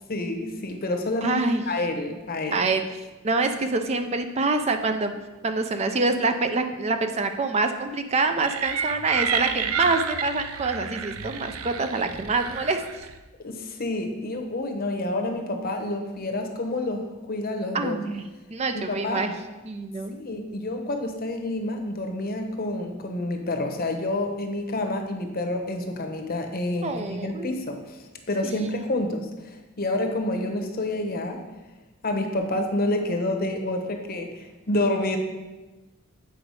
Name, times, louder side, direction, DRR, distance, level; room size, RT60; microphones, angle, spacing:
voice 1, 0.1-2.7 13.4-18.0 18.7-19.3 20.1-28.0 28.3-29.3 29.8-31.4 32.0-35.2, left 2 dB, 45° left, 4 dB, 0.9 m, -28 dB
voice 2, 1.2-1.6 2.5-2.8 3.2-5.1 5.4-12.8 17.7-19.3 19.6-20.1 26.8-27.6 28.4-28.7, right 3 dB, 30° right, 7 dB, 0.4 m, -26 dB
sound 1, 8.4-13.2, right 7 dB, 80° right, 0.5 m, -30 dB
8.1 x 4.9 x 4.8 m, 1.1 s
head